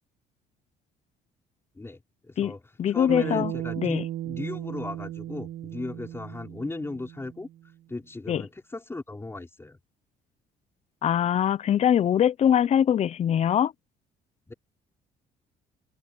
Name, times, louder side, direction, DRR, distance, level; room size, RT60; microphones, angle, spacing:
voice 1, 1.8-2.6 2.9-7.5 7.9-9.8 14.5-14.6, left 2 dB, 15° left, 4.6 m, -37 dB
voice 2, 2.8-3.5 3.8-4.0 8.3-8.4 11.0-13.7, left 9 dB, 40° left, 0.6 m, -22 dB
Bass guitar, 3.1-7.5, right 13 dB, 65° right, 3.0 m, -35 dB
cardioid pair, 110°, 17 cm